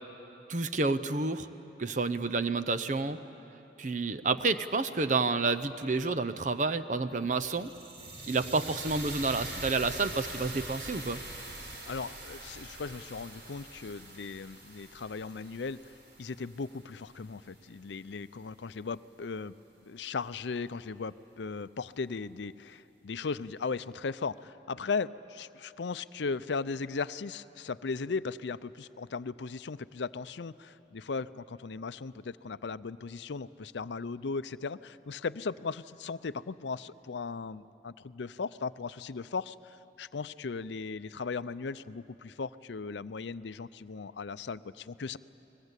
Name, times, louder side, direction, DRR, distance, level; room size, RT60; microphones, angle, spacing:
voice 1, 0.5-1.5 1.8-3.2 3.8-7.7 8.3-11.2, right 3 dB, 45° right, 10 dB, 0.6 m, -29 dB
sound 1, 7.1-17.3, right 2 dB, 85° right, 4.4 m, -44 dB
voice 2, 11.9-15.9 16.2-19.5 19.9-45.2, left 4 dB, 80° left, 15 dB, 0.5 m, -37 dB
30.0 x 21.0 x 8.2 m, 3.0 s
head